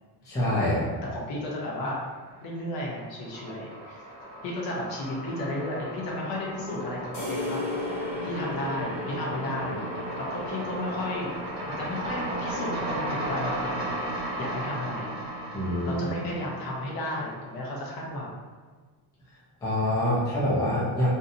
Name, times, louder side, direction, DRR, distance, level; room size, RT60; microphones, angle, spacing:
voice 1, 0.2-0.9 15.5-16.0 19.6-21.1, left 1 dB, 10° left, -8 dB, 0.3 m, -25 dB
voice 2, 1.1-2.0 2.4-4.1 4.4-7.9 8.2-11.3 11.6-13.9 14.4-15.1 15.8-18.3, left 1 dB, 55° left, -3 dB, 0.8 m, -33 dB
sound 1, 1.5-2.2 2.5-17.7, right 1 dB, 40° right, 0.8 m, -36 dB
sound 2, 7.1-14.7, left 2 dB, 90° left, 1.0 m, -37 dB
2.7 x 2.0 x 2.6 m, 1.4 s
cardioid pair, 160°, 41 cm